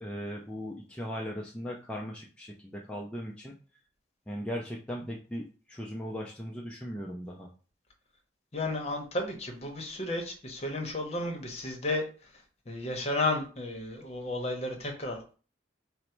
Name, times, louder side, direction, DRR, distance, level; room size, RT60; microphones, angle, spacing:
voice 1, 0.0-3.5 4.3-7.5, equal, 5° left, -2 dB, 0.3 m, -38 dB
voice 2, 8.5-12.0 12.7-15.3, left 2 dB, 35° left, 2 dB, 0.8 m, -33 dB
3.9 x 2.1 x 4.4 m, 0.37 s
head